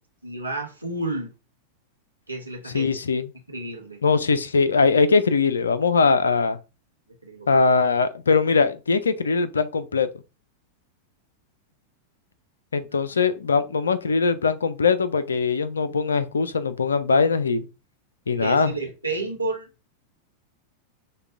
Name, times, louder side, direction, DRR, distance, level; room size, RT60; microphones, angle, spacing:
voice 1, 0.2-1.3 2.3-2.9 3.5-4.0 7.2-7.6 12.9-13.0 18.3-19.7, right 2 dB, 85° right, 0.9 m, -31 dB
voice 2, 2.7-3.3 4.0-6.6 7.5-10.1 12.7-17.7 18.3-18.7, left 4 dB, 70° left, 0.3 m, -21 dB
6.5 x 2.2 x 2.5 m
figure-of-eight pair, 90°, 0 cm